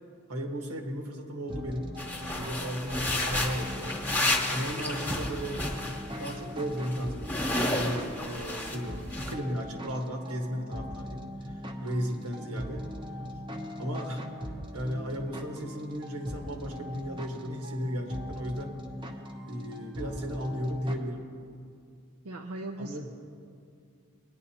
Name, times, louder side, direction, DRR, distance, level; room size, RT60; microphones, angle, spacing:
voice 1, 0.3-1.9 2.3-4.0 4.5-5.7 6.2-12.9 13.8-14.2 14.7-18.8 19.5-21.3 22.8-23.1, equal, 90° right, 2 dB, 1.5 m, -35 dB
sound 1, 1.5-20.9, equal, 20° right, 0.8 m, -40 dB
sound 2, 2.0-6.4 6.7-8.8 9.1-9.3, left 1 dB, 10° left, 1.2 m, -31 dB
voice 2, 22.2-23.1, right 1 dB, 70° right, 4 dB, 0.6 m, -38 dB
20.0 x 10.0 x 2.9 m, 2.4 s
head